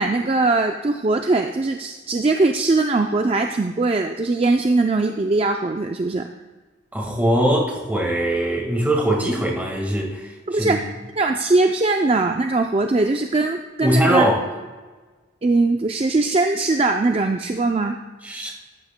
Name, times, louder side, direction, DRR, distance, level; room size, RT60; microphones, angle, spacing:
voice 1, 0.0-6.3 10.5-10.8 11.2-14.3 15.4-18.0, right 3 dB, 30° right, 5 dB, 0.4 m, -20 dB
voice 2, 6.9-10.8 13.8-14.4 18.2-18.5, right 1 dB, 10° right, 0 dB, 1.6 m, -21 dB
14.5 x 12.0 x 2.2 m, 1.3 s
head